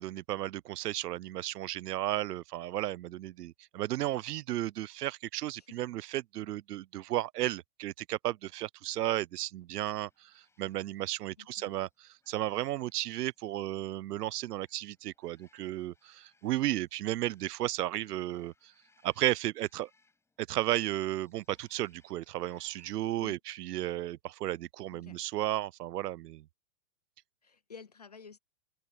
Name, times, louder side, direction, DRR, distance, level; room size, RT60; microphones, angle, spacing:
voice 1, 0.0-11.9 12.3-18.7 19.0-19.9 20.4-26.5, right 14 dB, 75° right, 0.7 m, -34 dB
sound 1, 10.0-23.2, left 3 dB, 5° left, 7.3 m, -72 dB
voice 2, 11.4-11.8 23.1-23.4 24.9-25.2 27.4-28.4, left 6 dB, 30° left, 0.4 m, -51 dB
open air
hypercardioid pair, 170°, 48 cm